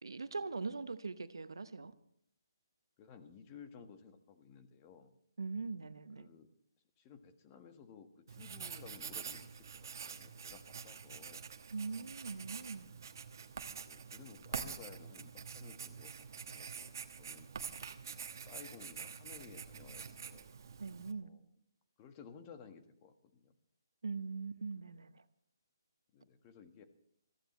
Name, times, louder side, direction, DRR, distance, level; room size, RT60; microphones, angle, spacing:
voice 1, 0.0-1.9 5.4-6.3 11.7-12.9 20.8-21.3 24.0-25.2, right 4 dB, 80° right, 12 dB, 0.9 m, -41 dB
voice 2, 3.0-5.1 6.2-6.5 7.0-11.5 12.5-12.7 13.8-17.5 18.1-20.5 21.2-21.4 22.0-23.5 26.1-26.8, left 6 dB, 25° left, 7 dB, 1.5 m, -56 dB
Writing, 8.3-21.1, right 6 dB, 55° right, 1.1 m, -46 dB
22.0 x 14.5 x 3.2 m, 0.69 s
figure-of-eight pair, 145°, 2 cm